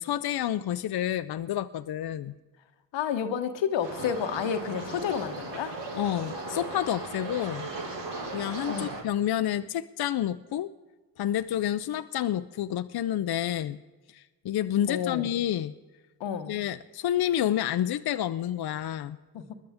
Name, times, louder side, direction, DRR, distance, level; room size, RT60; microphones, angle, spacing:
voice 1, 0.0-2.4 5.9-7.7 8.3-10.7 11.2-13.8 14.1-15.7 16.5-19.2, left 11 dB, 60° left, 11 dB, 0.6 m, -29 dB
voice 2, 2.9-5.8 8.7-8.9 14.9-15.3 16.2-16.5 19.3-19.5, left 8 dB, 85° left, 9 dB, 1.1 m, -30 dB
sound 1, 3.8-9.0, right 2 dB, 75° right, 2.4 m, -37 dB
21.0 x 11.5 x 3.5 m, 1.2 s
supercardioid pair, 45°, 44 cm